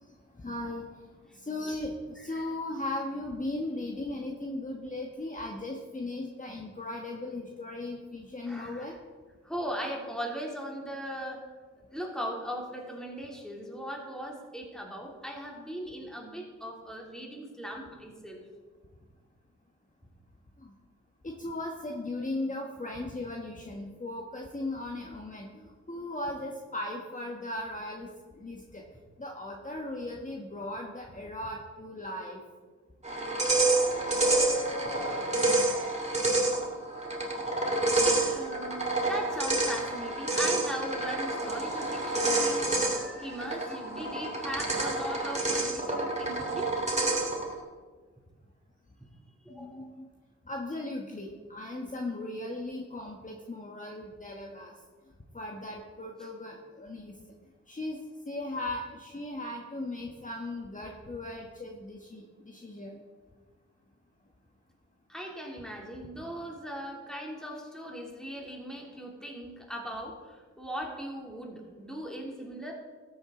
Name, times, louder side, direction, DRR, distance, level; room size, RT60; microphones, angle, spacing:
voice 1, 0.4-0.9 1.4-8.9 20.6-20.7 21.2-28.1 28.4-28.8 29.2-32.4 49.5-50.0 50.5-54.7 55.3-57.1 57.7-58.0 58.2-62.9 66.2-66.3, left 2 dB, 25° left, 0 dB, 1.5 m, -37 dB
voice 2, 8.5-8.9 9.4-11.4 11.9-18.4 33.2-34.1 35.0-35.8 38.0-46.7 49.4-49.9 56.2-56.3 65.1-72.7, equal, ahead, -1 dB, 3.1 m, -39 dB
sound 1, 33.0-47.5, right 2 dB, 20° right, 2.7 m, -28 dB
13.0 x 8.3 x 3.9 m, 1.4 s
cardioid pair, 50°, 29 cm